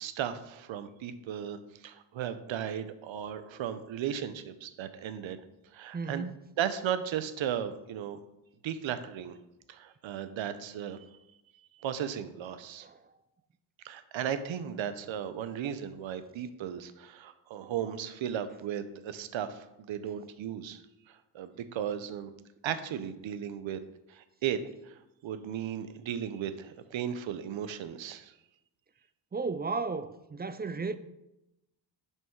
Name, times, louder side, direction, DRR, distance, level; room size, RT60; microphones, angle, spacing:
voice 1, 0.0-5.4 5.7-6.3 6.6-8.2 8.6-9.3 9.7-11.0 11.7-12.9 13.8-20.8 21.1-22.3 22.6-23.8 24.1-24.6 24.9-28.3, right 9 dB, 75° right, 0.7 m, -36 dB
voice 2, 5.9-6.4 12.8-13.0 29.3-31.0, right 4 dB, 20° right, 0.4 m, -34 dB
5.5 x 5.5 x 4.7 m
cardioid pair, 55°, 47 cm